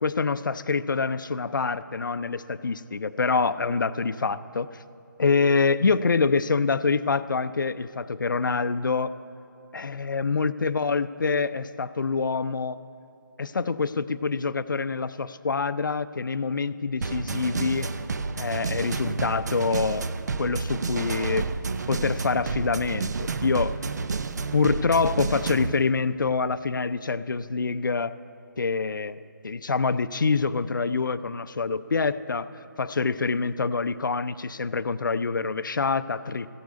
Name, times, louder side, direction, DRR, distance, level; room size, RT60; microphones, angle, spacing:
voice 1, 0.0-4.7 5.2-9.1 9.7-12.8 13.4-17.9 18.4-20.1 20.4-21.5 21.9-23.8 24.5-28.1 28.6-29.2 29.4-32.5 32.8-36.5, left 4 dB, 70° left, 13 dB, 0.5 m, -26 dB
sound 1, 17.0-25.7, right 4 dB, 55° right, 0.6 m, -30 dB
14.5 x 9.2 x 8.3 m, 2.6 s
figure-of-eight pair, 150°, 11 cm